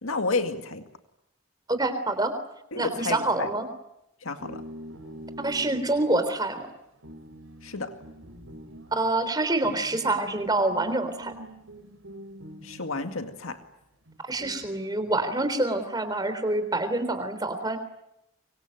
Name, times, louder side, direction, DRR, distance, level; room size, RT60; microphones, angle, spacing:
voice 1, 0.0-0.9 2.7-3.5 4.2-4.6 7.6-8.0 12.6-13.6, left 3 dB, 85° left, 7 dB, 2.1 m, -31 dB
voice 2, 1.7-2.3 2.8-3.7 5.4-6.7 8.9-11.3 14.3-17.8, right 2 dB, 20° right, 10 dB, 3.6 m, -26 dB
sound 1, 4.4-13.3 14.1-15.4, equal, 75° right, 3.9 m, -45 dB
25.0 x 24.5 x 9.2 m, 0.82 s
head